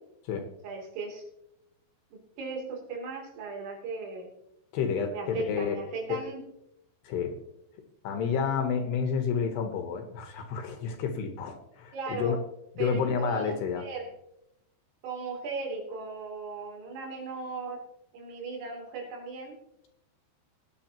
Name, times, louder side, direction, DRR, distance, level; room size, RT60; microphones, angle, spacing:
voice 1, 0.6-1.3 2.1-4.3 5.1-6.4 11.9-12.4 12.8-14.1 15.0-17.8 18.1-19.6, right 4 dB, 80° right, -1 dB, 5.7 m, -37 dB
voice 2, 4.7-5.8 6.1-6.2 7.0-7.4 8.0-12.4 12.8-13.9, left 6 dB, 70° left, 6 dB, 2.8 m, -30 dB
20.5 x 9.7 x 3.0 m, 0.83 s
omnidirectional pair, 5.6 m